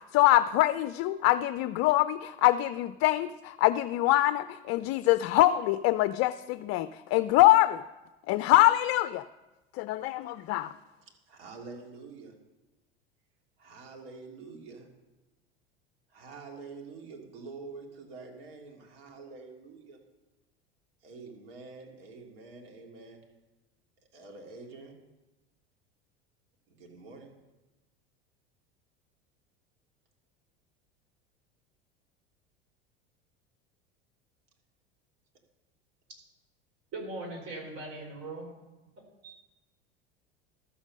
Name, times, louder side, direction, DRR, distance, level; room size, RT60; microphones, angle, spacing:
voice 1, 0.0-7.8 8.3-9.2 9.8-10.7, left 16 dB, 50° left, 14 dB, 0.4 m, -24 dB
voice 2, 11.1-12.3 13.6-14.9 16.1-20.0 21.0-23.2 24.1-25.0 26.8-27.3, right 4 dB, 75° right, 2 dB, 2.4 m, -46 dB
voice 3, 36.9-38.5 39.2-39.4, right 2 dB, 50° right, 2 dB, 4.1 m, -39 dB
12.5 x 7.2 x 6.3 m, 1.1 s
hypercardioid pair, 85°, 30 cm